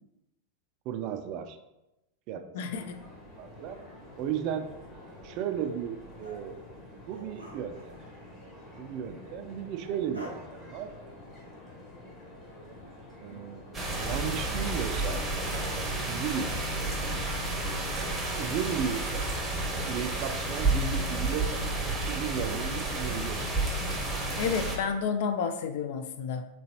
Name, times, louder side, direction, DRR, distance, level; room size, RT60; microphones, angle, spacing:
voice 1, 0.9-1.6 2.3-2.4 2.7-2.9 3.4-3.8 4.2-4.7 5.2-6.6 7.1-8.0 8.8-10.9 13.2-13.6 14.0-15.3 16.0-16.9 18.4-19.0 19.9-21.7 22.1-23.5 23.8-23.9, right 8 dB, 40° right, 8 dB, 0.3 m, -35 dB
voice 2, 2.5-3.0 24.4-26.5, left 6 dB, 50° left, 8 dB, 0.3 m, -30 dB
sound 1, 2.7-15.4, left 1 dB, 25° left, 1.4 m, -49 dB
sound 2, 5.2-5.8 6.2-7.9 10.1-10.3, equal, 90° left, 0.7 m, -48 dB
sound 3, 13.7-24.8, right 2 dB, 15° right, 0.7 m, -31 dB
3.9 x 3.0 x 2.8 m, 0.95 s
figure-of-eight pair, 90°, 0 cm